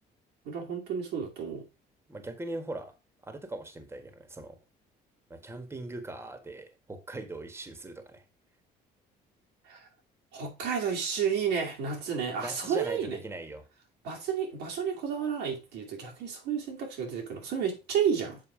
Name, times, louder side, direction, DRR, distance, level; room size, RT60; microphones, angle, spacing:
voice 1, 0.4-1.7 9.7-9.9 10.3-13.2 14.0-18.4, right 7 dB, 85° right, 2.6 m, -31 dB
voice 2, 2.1-2.9 3.2-4.6 5.3-8.2 12.4-13.6, right 2 dB, 15° right, 1.4 m, -40 dB
7.4 x 4.6 x 4.9 m
cardioid pair, 110°, 17 cm